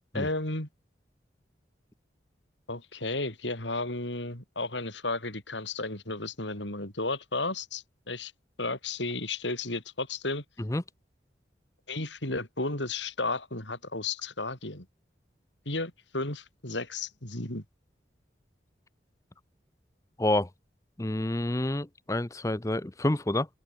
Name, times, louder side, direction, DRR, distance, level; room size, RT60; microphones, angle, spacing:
voice 1, 0.1-0.7 2.7-8.3 8.6-10.4 11.9-14.8 15.6-17.6, left 2 dB, 80° left, 7.0 m, -33 dB
voice 2, 21.0-23.5, left 1 dB, 15° left, 0.7 m, -28 dB
open air
head